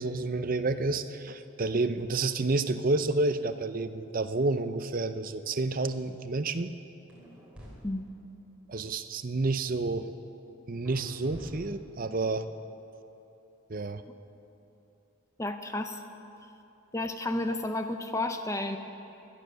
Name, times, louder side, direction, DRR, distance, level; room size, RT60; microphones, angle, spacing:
voice 1, 0.0-6.7 8.7-10.1 10.7-12.5 13.7-14.0, right 3 dB, 40° right, 10 dB, 0.6 m, -29 dB
sound 1, 7.1-7.7 10.9-12.0, equal, 5° right, 3.2 m, -46 dB
voice 2, 15.4-16.0 16.9-18.8, left 2 dB, 15° left, 7 dB, 0.7 m, -31 dB
17.5 x 12.0 x 6.7 m, 3.0 s
head